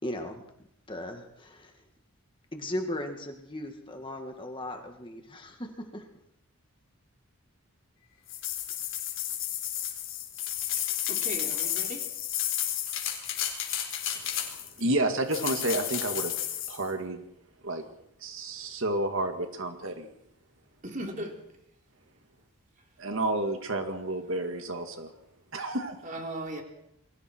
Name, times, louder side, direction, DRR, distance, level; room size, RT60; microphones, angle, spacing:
voice 1, 0.0-0.4 0.9-1.7 2.5-6.1, left 1 dB, 20° left, 2.1 m, -37 dB
sound 1, 8.3-14.8 15.3-16.8, left 11 dB, 60° left, 4.0 m, -32 dB
voice 2, 10.8-12.1 20.8-21.4 26.0-26.6, right 1 dB, 35° right, 3.7 m, -38 dB
voice 3, 14.8-16.3 16.7-17.2 17.6-17.8 18.2-20.1 23.0-25.1 25.5-26.0, right 2 dB, 60° right, 2.1 m, -30 dB
29.0 x 22.0 x 4.6 m
head